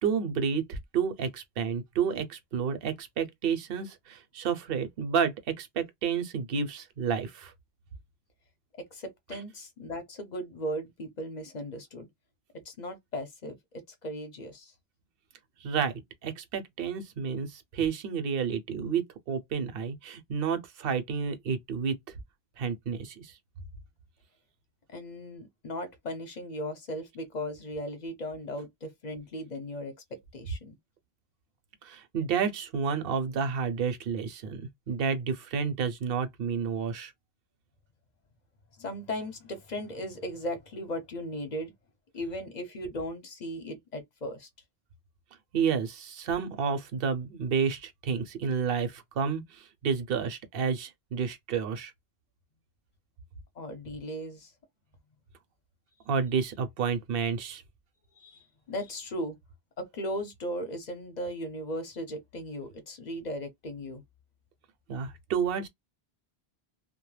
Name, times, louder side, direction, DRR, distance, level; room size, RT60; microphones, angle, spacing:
voice 1, 0.0-7.5 15.6-22.0 22.6-23.4 31.8-37.1 45.5-51.9 56.1-57.6 64.9-65.7, right 6 dB, 65° right, 0.8 m, -30 dB
voice 2, 8.8-12.1 12.6-14.7 24.9-30.8 38.7-41.7 42.1-44.5 53.6-54.5 58.2-59.4 59.8-64.0, equal, 50° left, 0.7 m, -37 dB
2.2 x 2.1 x 3.1 m
omnidirectional pair, 1.1 m